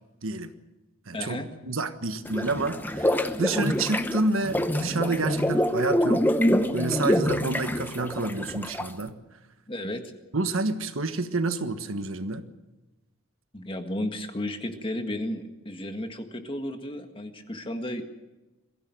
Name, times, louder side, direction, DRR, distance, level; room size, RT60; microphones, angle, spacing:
voice 1, 0.2-0.5 1.1-6.3 6.7-9.2 10.3-12.4, right 2 dB, 70° right, 9 dB, 1.4 m, -29 dB
voice 2, 1.1-1.5 3.7-3.8 9.7-10.0 13.5-18.0, left 1 dB, 25° left, 6 dB, 1.8 m, -33 dB
sound 1, 2.3-9.0, left 1 dB, 10° left, 0.9 m, -26 dB
22.5 x 16.0 x 7.8 m, 1.1 s
head